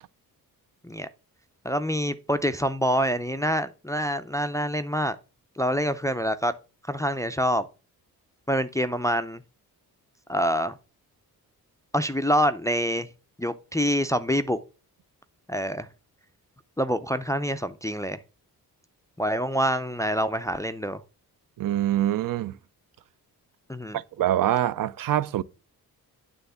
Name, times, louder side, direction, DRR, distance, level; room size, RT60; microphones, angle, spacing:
voice 1, 1.6-5.2 5.6-6.5 6.9-7.7 8.5-9.4 10.3-10.8 11.9-13.1 13.4-14.6 15.5-15.9 16.8-18.2 19.2-21.0 23.7-24.0, equal, 10° left, 0.3 m, -26 dB
voice 2, 21.6-22.6 23.9-25.4, right 12 dB, 65° right, 0.5 m, -25 dB
9.3 x 3.5 x 6.7 m
wide cardioid pair, 175°, 37 cm